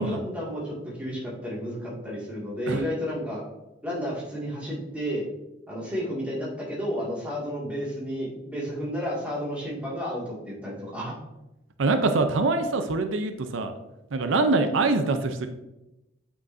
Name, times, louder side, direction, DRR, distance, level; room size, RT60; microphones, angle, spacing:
voice 1, 0.0-3.4 3.8-5.3 5.7-11.2 14.6-14.7, equal, 5° right, -6 dB, 2.0 m, -32 dB
voice 2, 11.8-13.7 14.1-15.5, right 3 dB, 75° right, 8 dB, 0.6 m, -24 dB
7.9 x 5.8 x 2.6 m, 0.95 s
head